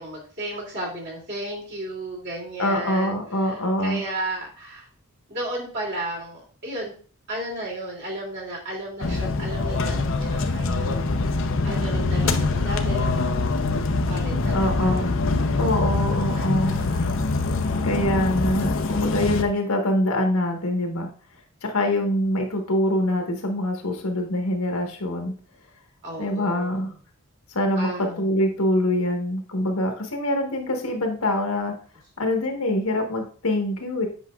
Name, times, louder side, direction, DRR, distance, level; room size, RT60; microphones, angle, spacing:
voice 1, 0.0-4.9 5.3-6.9 7.3-11.4 11.6-13.6 14.1-15.1 15.8-17.1 26.0-27.0 27.8-28.3, right 1 dB, 50° right, -2 dB, 2.7 m, -34 dB
voice 2, 2.6-4.0 14.5-15.0 15.6-16.8 17.8-21.1 21.6-25.3 26.2-26.9 27.5-31.7 32.2-34.1, left 1 dB, 75° left, 3 dB, 1.3 m, -24 dB
sound 1, 9.0-19.4, left 3 dB, 60° left, 0.6 m, -24 dB
8.2 x 5.6 x 2.4 m, 0.40 s
head